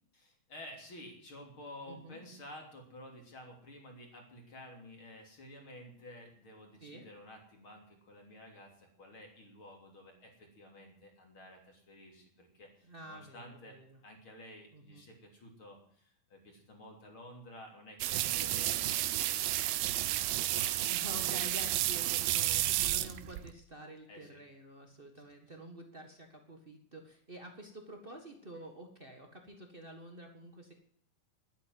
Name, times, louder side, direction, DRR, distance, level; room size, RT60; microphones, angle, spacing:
voice 1, 0.1-13.8 14.0-21.4 24.1-24.4, left 1 dB, 35° left, 2 dB, 3.8 m, -52 dB
voice 2, 1.9-2.2 6.8-7.1 12.8-14.0 14.7-15.0 18.3-18.5 20.9-30.7, right 1 dB, 50° right, 3 dB, 0.6 m, -49 dB
sound 1, 18.0-23.5, right 15 dB, 90° right, 2.7 m, -31 dB
12.0 x 10.5 x 9.4 m, 0.62 s
omnidirectional pair, 4.2 m